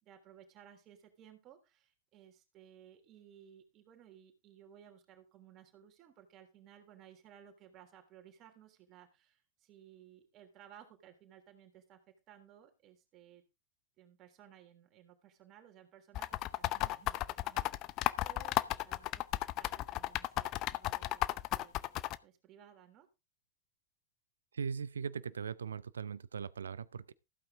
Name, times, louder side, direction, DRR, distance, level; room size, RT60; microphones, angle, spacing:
voice 1, 0.0-12.0 12.3-13.4 14.0-19.3 19.5-23.1, right 10 dB, 35° right, 3.2 m, -59 dB
sound 1, 16.1-22.2, left 16 dB, 40° left, 0.7 m, -33 dB
voice 2, 24.5-27.1, right 6 dB, 70° right, 0.5 m, -39 dB
15.0 x 8.7 x 3.7 m
figure-of-eight pair, 90°, 0 cm